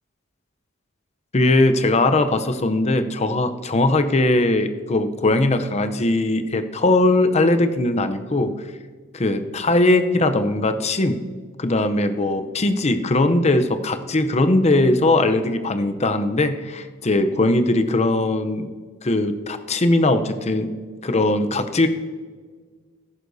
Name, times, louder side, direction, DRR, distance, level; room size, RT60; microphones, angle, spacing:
voice 1, 1.3-8.5 9.1-11.2 11.6-18.7 19.0-20.7 21.0-21.9, left 2 dB, 35° left, 9 dB, 0.7 m, -20 dB
14.0 x 11.0 x 2.7 m, 1.5 s
head